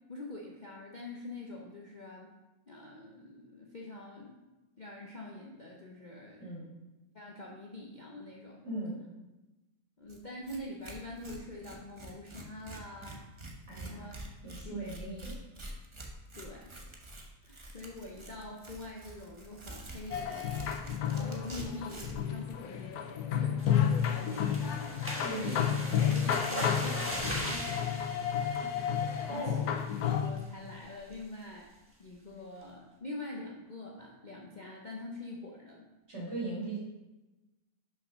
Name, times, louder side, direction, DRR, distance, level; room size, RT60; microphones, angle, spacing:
voice 1, 0.1-2.3 2.7-4.4 4.8-6.5 7.1-8.6 10.0-13.2 13.7-14.3 14.6-15.1 16.3-16.8 17.4-20.8 21.1-24.6 25.3-25.7 26.1-27.9 29.0-29.7 30.1-31.7 32.0-35.9, left 2 dB, 40° left, -2 dB, 0.8 m, -45 dB
voice 2, 8.6-9.0 13.7-14.1 14.4-15.3 17.4-17.6 25.2-26.0 29.3-29.7 36.1-36.8, right 2 dB, 45° right, -6 dB, 3.0 m, -39 dB
Tearing, 10.1-10.2 10.5-10.6 10.8-22.3, right 1 dB, 25° right, 0.8 m, -46 dB
sound 1, 20.1-30.3, left 8 dB, 85° left, 1.2 m, -31 dB
sound 2, 23.6-29.4 29.8-30.0 30.4-30.5 30.8-31.1, equal, 10° right, 1.3 m, -39 dB
5.9 x 5.7 x 5.6 m, 1.1 s
omnidirectional pair, 1.6 m